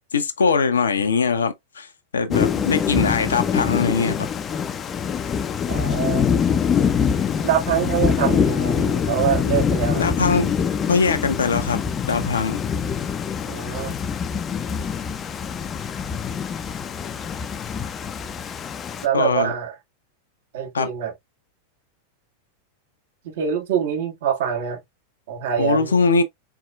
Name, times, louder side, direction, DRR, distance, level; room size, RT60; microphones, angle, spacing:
voice 1, 0.1-1.9 2.1-4.3 10.0-10.6 10.9-11.8 12.1-12.6 19.1-19.5 20.7-20.9 25.6-26.2, left 5 dB, 70° left, 0.6 m, -21 dB
Thunder / Rain, 2.3-19.1, left 7 dB, 25° left, 0.5 m, -24 dB
voice 2, 5.7-6.3 7.4-10.1 13.4-14.0 19.0-19.7 20.5-21.1 23.2-24.8 25.3-26.0, right 9 dB, 55° right, 1.6 m, -24 dB
4.6 x 4.4 x 2.3 m
figure-of-eight pair, 90°, 0 cm